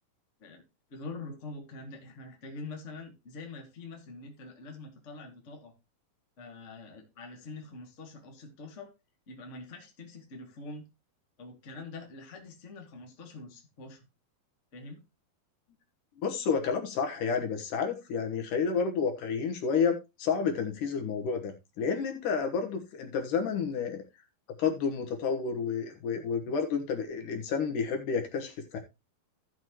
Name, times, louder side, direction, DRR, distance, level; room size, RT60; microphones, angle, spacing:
voice 1, 0.9-5.7 6.4-8.9 9.3-10.8 11.4-14.0 14.7-15.0, left 3 dB, 30° left, 3 dB, 1.4 m, -45 dB
voice 2, 16.2-24.0 24.6-28.8, left 6 dB, 70° left, 5 dB, 2.7 m, -30 dB
15.0 x 6.2 x 3.0 m, 0.24 s
omnidirectional pair, 4.1 m